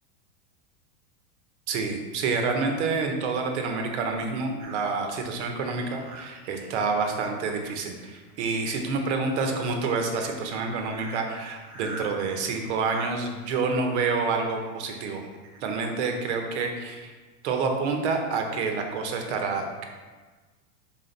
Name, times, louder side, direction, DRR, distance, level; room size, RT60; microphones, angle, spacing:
voice 1, 1.7-15.2 15.6-17.1 17.4-19.9, right 4 dB, 50° right, 4 dB, 1.0 m, -28 dB
sound 1, 4.6-7.1 7.6-7.9 8.2-9.9 10.4-10.5 10.7-13.1 14.1-15.7 16.3-16.4 16.8-16.9, right 3 dB, 25° right, 0.5 m, -44 dB
5.9 x 4.4 x 4.0 m, 1.3 s
supercardioid pair, 170°, 44 cm